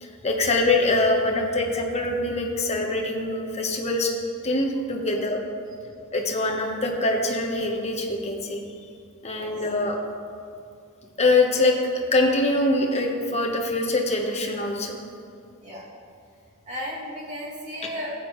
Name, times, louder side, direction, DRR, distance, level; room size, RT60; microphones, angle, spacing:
voice 1, 0.0-4.1 4.4-5.4 6.1-8.6 9.2-10.0 11.2-15.0, left 2 dB, 30° left, 1 dB, 1.1 m, -24 dB
voice 2, 16.7-18.2, equal, 35° right, -6 dB, 2.5 m, -34 dB
14.0 x 8.4 x 3.1 m, 2.3 s
head